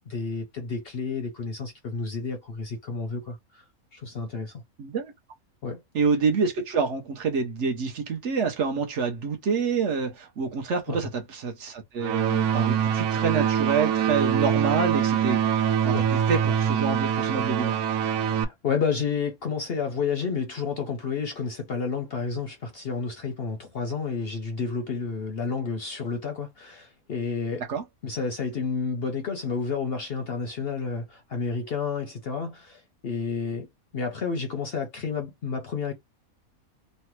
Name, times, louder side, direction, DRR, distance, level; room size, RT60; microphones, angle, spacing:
voice 1, 0.1-3.6 3.9-4.6 5.6-5.8 10.9-11.0 15.9-16.1 18.4-27.6 28.0-35.9, left 5 dB, 55° left, 0.7 m, -30 dB
voice 2, 4.8-5.1 5.9-15.5 15.8-15.9 16.3-17.8 27.7-27.8, right 5 dB, 60° right, 0.9 m, -27 dB
sound 1, 12.0-18.5, right 8 dB, 85° right, 1.1 m, -24 dB
3.2 x 2.1 x 3.0 m
omnidirectional pair, 1.5 m